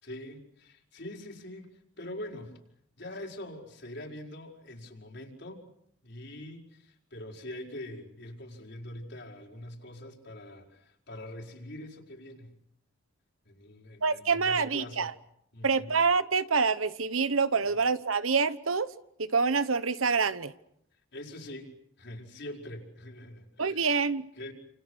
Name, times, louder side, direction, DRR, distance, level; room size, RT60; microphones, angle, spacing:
voice 1, 0.0-2.6 3.0-5.7 6.0-12.6 13.4-15.1 15.5-15.9 17.6-17.7 21.1-24.0 24.4-24.5, left 1 dB, 55° left, 1 dB, 5.1 m, -44 dB
voice 2, 14.0-15.1 15.6-18.9 19.2-20.5 23.6-24.2, right 5 dB, 90° right, 14 dB, 1.2 m, -26 dB
29.5 x 28.0 x 6.5 m, 0.75 s
head